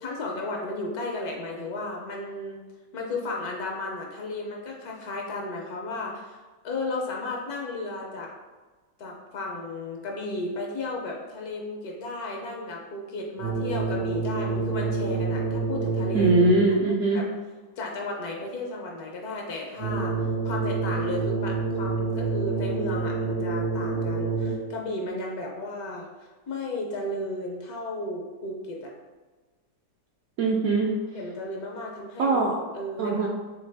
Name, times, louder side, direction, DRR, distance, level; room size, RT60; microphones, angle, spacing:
voice 1, 0.0-2.6 2.9-8.3 9.0-16.4 17.1-17.3 17.8-28.9 31.1-32.4 32.7-33.3, left 2 dB, 65° left, 0 dB, 1.0 m, -34 dB
sound 1, 13.4-16.8 19.8-24.8, right 4 dB, 35° right, 0.5 m, -28 dB
voice 2, 16.1-17.2 30.4-31.0 32.2-32.6 33.0-33.3, right 3 dB, 75° right, -2 dB, 0.8 m, -21 dB
3.9 x 3.3 x 3.3 m, 1.3 s
omnidirectional pair, 2.0 m